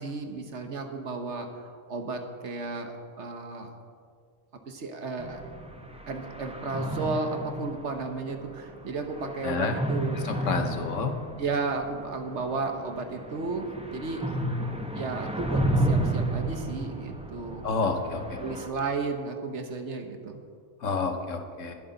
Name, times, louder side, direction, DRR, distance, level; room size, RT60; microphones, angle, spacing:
voice 1, 0.0-3.7 4.7-5.4 6.1-10.5 11.4-14.4 14.9-17.7 18.4-20.4, right 4 dB, 60° right, 5 dB, 1.4 m, -33 dB
sound 1, 5.2-18.7, right 1 dB, 5° right, 0.8 m, -32 dB
voice 2, 9.4-9.8 10.2-11.1 17.6-18.4 20.8-21.7, left 4 dB, 70° left, 5 dB, 1.3 m, -29 dB
20.5 x 8.1 x 4.0 m, 2.1 s
omnidirectional pair, 1.4 m